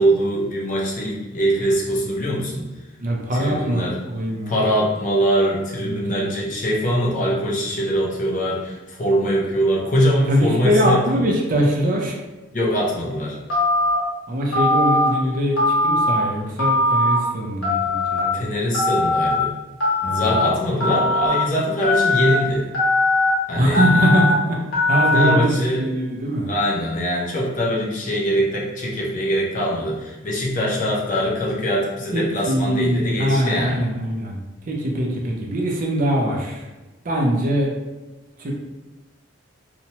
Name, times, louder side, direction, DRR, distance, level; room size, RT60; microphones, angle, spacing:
voice 1, 0.0-2.7 3.3-4.0 4.5-11.3 12.5-13.4 18.3-19.5 20.1-22.7 23.5-23.8 24.8-25.8 26.5-33.8, equal, 40° left, -3 dB, 0.5 m, -22 dB
voice 2, 3.0-4.5 5.8-6.3 10.3-12.1 14.3-18.5 20.0-20.5 23.5-24.6 24.9-26.5 32.1-36.7 37.0-37.7 38.4-38.5, equal, 40° right, -1 dB, 0.4 m, -22 dB
Telephone, 13.5-14.0 14.5-15.1 15.6-16.2 16.6-17.2 17.6-18.2 18.7-19.3 19.8-20.3 20.8-21.3 21.8-22.3 22.7-23.3 23.7-24.3 24.7-25.3, left 2 dB, 75° left, 1.1 m, -19 dB
2.8 x 2.1 x 2.8 m, 1.1 s
head